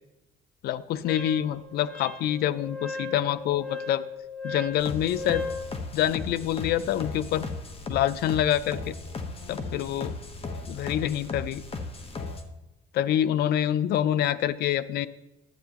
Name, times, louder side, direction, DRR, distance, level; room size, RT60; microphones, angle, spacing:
voice 1, 0.6-4.0 4.4-5.4 5.9-7.5 7.9-8.9 9.5-10.1 10.7-11.6 12.9-15.1, left 11 dB, 70° left, 16 dB, 0.5 m, -26 dB
Wind instrument woodwind instrument, 1.1-5.7, left 3 dB, 5° left, 1.6 m, -37 dB
sound 1, 4.8-12.4, left 3 dB, 35° left, 1.1 m, -36 dB
12.0 x 8.9 x 3.0 m, 0.97 s
cardioid pair, 110°, 17 cm